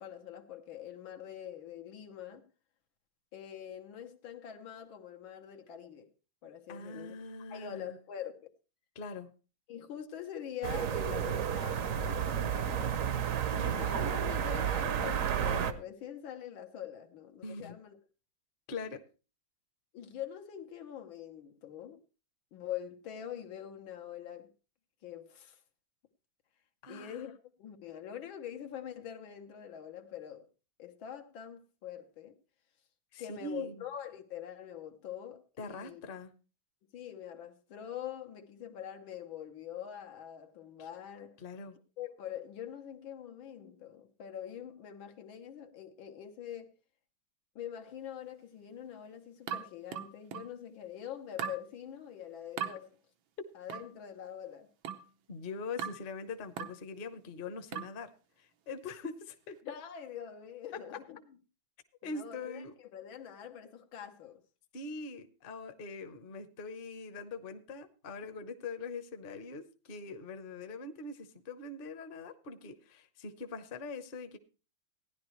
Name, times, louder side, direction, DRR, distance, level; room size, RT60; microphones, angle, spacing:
voice 1, 0.0-2.4 3.3-6.1 6.4-7.1 7.5-8.5 9.7-18.0 19.9-22.0 22.5-24.5 25.0-25.6 26.9-30.5 30.8-32.4 33.2-36.0 36.9-41.4 42.0-46.7 47.6-53.0 53.6-54.7 59.6-61.2 62.0-64.4, left 9 dB, 85° left, 1.9 m, -44 dB
voice 2, 6.7-8.0 8.9-9.3 17.4-17.8 18.7-19.0 26.8-27.2 33.1-33.8 35.6-36.3 40.8-40.9 41.4-41.8 55.3-58.1 58.4-59.6 62.0-62.7 64.7-74.4, left 3 dB, 40° left, 0.8 m, -43 dB
sound 1, 10.6-15.7, right 8 dB, 55° right, 1.0 m, -31 dB
sound 2, 49.5-50.6 51.4-51.7 52.6-52.8 53.7-54.0 54.8-55.1 55.8-56.1 56.6-56.8 57.7-58.0, right 8 dB, 85° right, 1.7 m, -39 dB
16.0 x 10.5 x 3.1 m
omnidirectional pair, 2.1 m